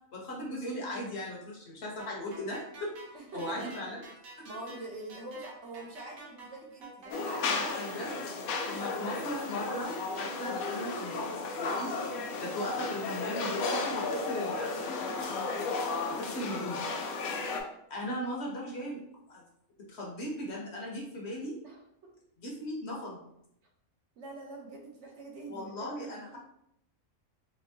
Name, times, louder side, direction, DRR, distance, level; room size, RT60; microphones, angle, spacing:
voice 1, 0.1-2.9 3.3-4.0 7.4-8.2 8.7-11.9 12.4-15.0 16.2-16.8 17.9-19.0 19.3-19.4 19.9-21.6 22.4-23.2 25.5-26.4, left 1 dB, 55° left, -2 dB, 1.0 m, -38 dB
sound 1, 2.0-10.6, right 3 dB, 80° right, 1.4 m, -49 dB
voice 2, 3.1-4.0 4.4-8.2 17.2-17.5 21.6-22.1 24.2-26.4, right 2 dB, 60° right, -1 dB, 1.0 m, -45 dB
sound 2, 7.1-17.6, left 3 dB, 85° left, 1.1 m, -34 dB
4.4 x 2.7 x 2.7 m, 0.76 s
omnidirectional pair, 1.4 m